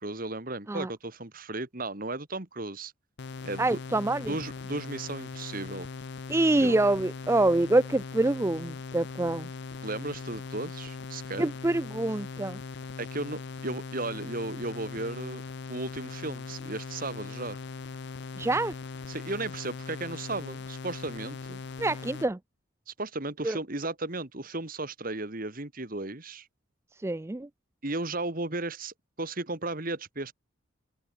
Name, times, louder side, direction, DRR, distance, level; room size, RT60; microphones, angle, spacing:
voice 1, 0.0-2.9 3.4-3.8 4.3-5.9 6.6-6.8 9.8-11.5 13.0-15.4 15.7-17.6 19.1-21.6 22.9-26.5 27.8-30.3, right 2 dB, 40° right, 1.9 m, -35 dB
sound 1, 3.2-22.3, left 4 dB, 55° left, 0.6 m, -40 dB
voice 2, 3.6-4.3 6.3-9.5 11.4-12.6 18.4-18.7 21.8-22.4 23.4-23.6 26.9-27.5, right 2 dB, 15° right, 0.3 m, -26 dB
open air
head